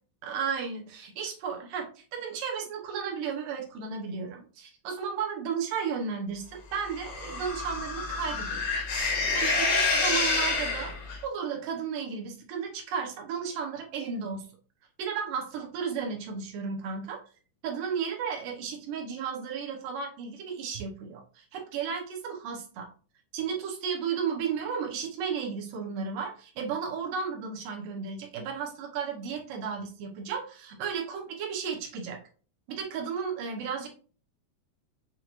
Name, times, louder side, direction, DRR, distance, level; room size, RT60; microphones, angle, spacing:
voice 1, 0.2-8.7 9.3-10.9 11.2-14.5 15.0-17.2 17.6-22.9 23.3-32.2 32.7-34.0, right 6 dB, 90° right, 1 dB, 2.7 m, -34 dB
sound 1, 6.9-11.2, left 4 dB, 60° left, 2.0 m, -28 dB
6.7 x 3.0 x 2.4 m, 0.38 s
omnidirectional pair, 3.7 m